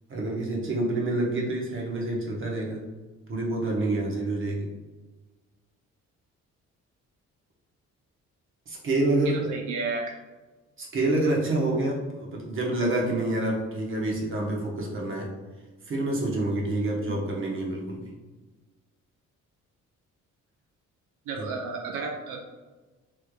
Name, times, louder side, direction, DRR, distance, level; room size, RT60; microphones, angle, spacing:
voice 1, 0.1-2.8 3.3-4.7 8.7-9.4 10.8-15.3 15.9-18.1 21.4-21.5, right 2 dB, 45° right, -1 dB, 0.9 m, -27 dB
voice 2, 9.3-10.1 17.0-17.2 21.3-22.4, right 4 dB, 80° right, 2 dB, 0.4 m, -32 dB
3.2 x 3.1 x 2.2 m, 1.2 s
cardioid pair, 90°, 30 cm